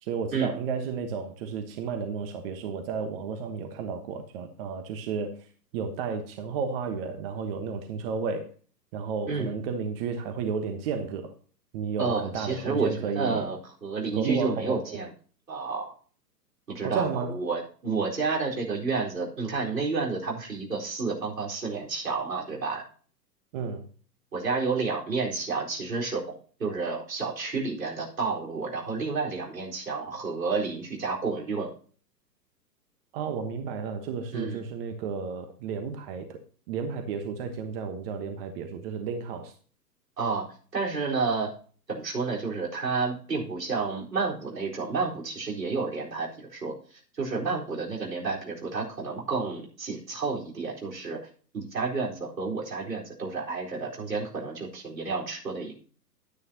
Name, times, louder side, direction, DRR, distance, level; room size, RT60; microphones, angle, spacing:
voice 1, 0.0-5.5 5.7-8.5 8.9-11.3 11.7-13.5 14.1-15.0 16.8-17.4 23.5-23.8 33.1-36.4 36.7-39.5, right 5 dB, 35° right, 1.2 m, -32 dB
voice 2, 12.0-15.1 15.5-15.9 16.7-22.8 24.3-26.3 26.6-31.7 34.3-34.6 40.2-41.5 41.9-51.2 51.5-55.7, right 4 dB, 75° right, 4.4 m, -30 dB
11.0 x 9.8 x 2.9 m
figure-of-eight pair, 110°, 49 cm